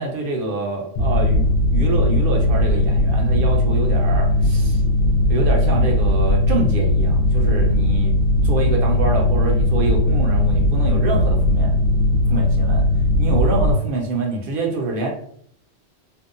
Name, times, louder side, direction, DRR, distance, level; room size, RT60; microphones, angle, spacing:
voice 1, 0.0-1.4 1.7-4.8 5.3-8.1 8.4-11.7 12.3-12.8 13.2-15.1, right 3 dB, 60° right, 1 dB, 0.7 m, -25 dB
Mechanical fan, 1.0-13.7, left 1 dB, 85° left, 0.9 m, -18 dB
2.7 x 2.1 x 2.4 m, 0.64 s
omnidirectional pair, 1.2 m